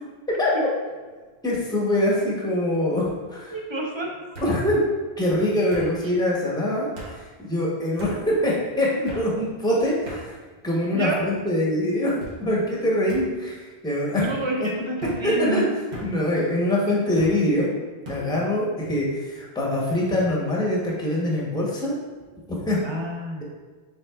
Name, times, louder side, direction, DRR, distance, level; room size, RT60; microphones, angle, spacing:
sound 1, 0.9-1.3 1.7-2.2 3.3-3.4 4.3-4.6 5.7-5.9 7.0-7.1 8.0-8.2 9.1-9.3 10.1-10.2 11.0-11.4 12.2-12.4 13.1-13.2 14.1-14.3 15.0-15.2 15.9-16.1 17.2-17.4 18.0-18.2, right 1 dB, 85° right, 1.4 m, -38 dB
voice 1, 1.4-3.5 4.4-4.8 5.2-10.4 10.6-12.1 12.4-14.2 14.6-14.7 15.2-15.6 16.0-17.7 18.1-22.0 22.5-22.8, left 1 dB, 5° left, -4 dB, 0.8 m, -24 dB
voice 2, 3.5-4.1 10.9-11.2 14.1-15.6 17.3-17.4 22.8-23.4, right 1 dB, 30° right, -1 dB, 0.6 m, -28 dB
6.1 x 3.6 x 2.3 m, 1.4 s
omnidirectional pair, 1.1 m